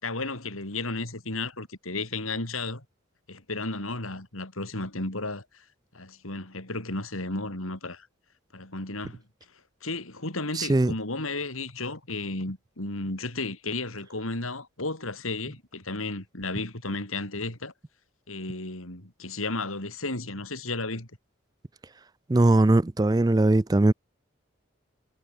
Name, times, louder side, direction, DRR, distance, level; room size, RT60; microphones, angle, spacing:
voice 1, 0.0-2.8 3.3-5.6 5.9-8.1 8.5-9.2 9.8-17.7 18.3-21.1, left 2 dB, 90° left, 5.4 m, -33 dB
voice 2, 10.6-10.9 22.3-23.9, right 2 dB, 20° right, 0.4 m, -20 dB
head